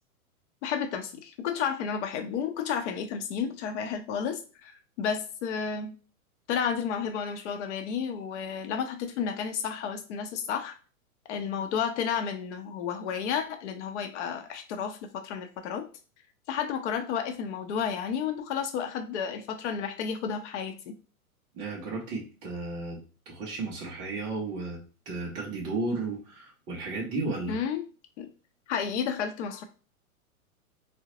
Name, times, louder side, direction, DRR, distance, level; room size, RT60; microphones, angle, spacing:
voice 1, 0.6-5.9 6.5-10.7 11.3-15.9 16.5-21.0 27.5-27.9 28.2-28.3 28.7-29.6, left 7 dB, 55° left, 6 dB, 0.7 m, -32 dB
voice 2, 21.5-23.0 23.3-24.8 25.1-27.6, right 3 dB, 10° right, -4 dB, 0.3 m, -33 dB
3.6 x 2.1 x 2.8 m, 0.37 s
hypercardioid pair, 115°, 43 cm